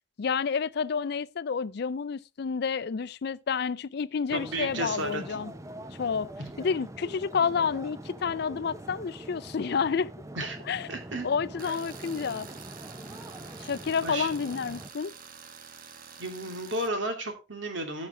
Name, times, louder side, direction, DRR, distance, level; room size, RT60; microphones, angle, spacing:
voice 1, 0.2-5.5 6.0-6.3 6.6-10.1 10.7-10.9 11.2-12.5 13.6-15.1, left 6 dB, 60° left, 0.4 m, -29 dB
sound 1, 4.3-14.9, right 1 dB, 15° right, 0.7 m, -43 dB
voice 2, 4.3-5.2 6.4-6.5 10.4-10.6 10.9-11.3 11.6-11.7 13.5-13.7 14.0-14.3 16.2-18.1, right 1 dB, 75° right, 2.8 m, -33 dB
Tools, 11.6-16.9, right 6 dB, 50° right, 1.2 m, -47 dB
15.0 x 6.1 x 3.7 m
head